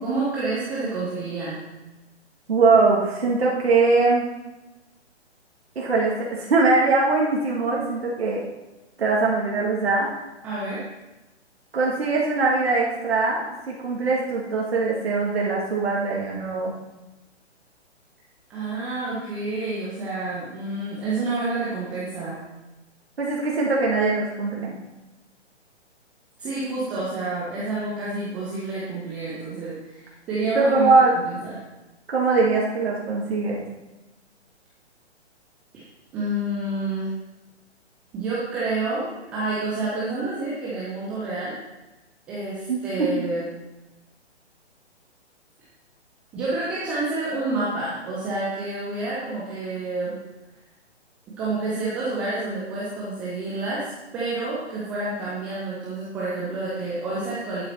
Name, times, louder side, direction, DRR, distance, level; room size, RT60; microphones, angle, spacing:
voice 1, 0.0-1.6 10.4-10.8 18.5-22.4 26.4-31.0 31.2-31.6 36.1-37.1 38.1-39.1 39.3-41.5 42.3-43.4 46.3-50.2 51.4-57.6, right 2 dB, 5° right, -8 dB, 0.4 m, -29 dB
voice 2, 2.5-4.3 5.8-8.4 9.0-10.1 11.7-16.7 23.2-24.8 30.5-31.1 32.1-33.6 42.7-42.8, right 3 dB, 60° right, -4 dB, 2.2 m, -21 dB
11.5 x 8.6 x 4.3 m, 1.0 s
figure-of-eight pair, 130°, 34 cm